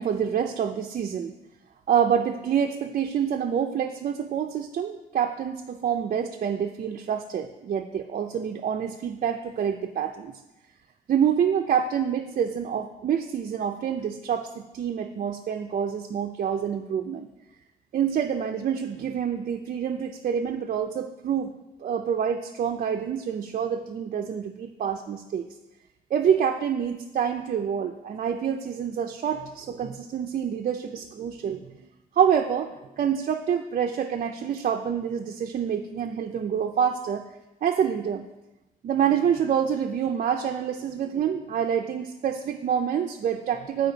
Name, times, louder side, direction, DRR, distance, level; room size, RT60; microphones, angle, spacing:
voice 1, 0.0-1.3 1.9-10.4 11.1-17.3 17.9-21.5 21.8-25.5 26.1-31.6 32.2-37.2 37.6-38.2 38.8-43.9, right 8 dB, 55° right, 4 dB, 0.5 m, -27 dB
10.0 x 5.0 x 3.9 m, 0.98 s
cardioid pair, 125°, 16 cm